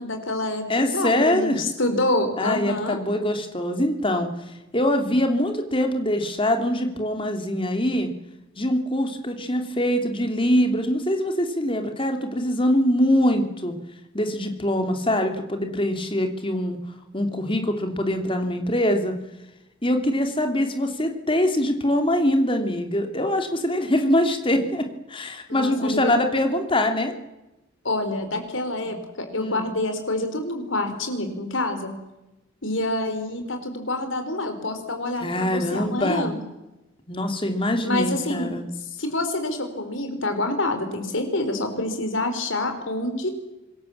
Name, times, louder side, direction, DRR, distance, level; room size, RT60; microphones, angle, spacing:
voice 1, 0.0-3.0 25.5-26.2 27.8-31.9 32.6-36.3 37.8-38.5 39.0-43.3, left 2 dB, 85° left, 7 dB, 4.6 m, -27 dB
voice 2, 0.7-1.6 2.4-4.3 4.7-8.1 8.6-13.7 14.1-16.8 17.1-19.1 19.8-27.1 28.9-29.0 29.4-29.7 35.2-36.3 37.1-38.6, left 1 dB, 25° left, 5 dB, 3.0 m, -23 dB
26.0 x 21.5 x 7.4 m, 0.98 s
head